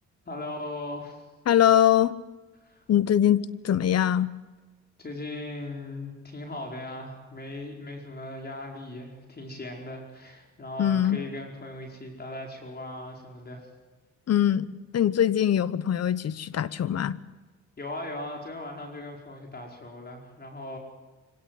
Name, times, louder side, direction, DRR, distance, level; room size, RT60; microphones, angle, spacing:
voice 1, 0.2-1.2 2.6-2.8 5.0-13.7 17.8-20.8, left 1 dB, 30° left, 1 dB, 5.0 m, -38 dB
voice 2, 1.5-2.2 2.9-4.3 10.8-11.2 14.3-14.7 14.9-17.2, left 10 dB, 55° left, 17 dB, 1.1 m, -22 dB
25.0 x 17.5 x 9.2 m, 1.3 s
cardioid pair, 90°, 30 cm